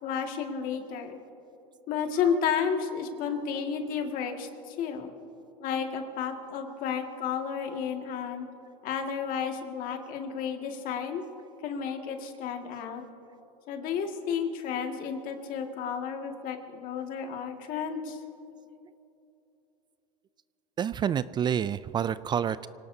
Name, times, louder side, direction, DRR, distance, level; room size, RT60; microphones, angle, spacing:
voice 1, 0.0-1.2 1.9-5.1 5.6-8.5 8.8-11.2 11.6-13.0 13.7-18.2, left 7 dB, 55° left, 4 dB, 2.0 m, -32 dB
voice 2, 20.8-22.7, right 8 dB, 25° right, 16 dB, 0.3 m, -28 dB
26.0 x 18.0 x 2.8 m, 2.9 s
supercardioid pair, 115°, 17 cm